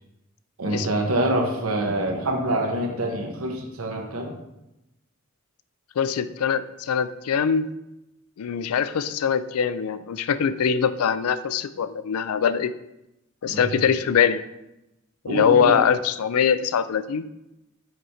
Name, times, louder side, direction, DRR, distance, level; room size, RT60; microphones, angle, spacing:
voice 1, 0.6-4.4 13.5-13.8 15.3-15.9, right 1 dB, 80° right, 2 dB, 1.2 m, -26 dB
voice 2, 6.0-7.7 8.4-12.7 13.4-14.4 15.2-17.3, left 7 dB, 90° left, 13 dB, 0.4 m, -22 dB
6.5 x 4.3 x 4.9 m, 0.91 s
head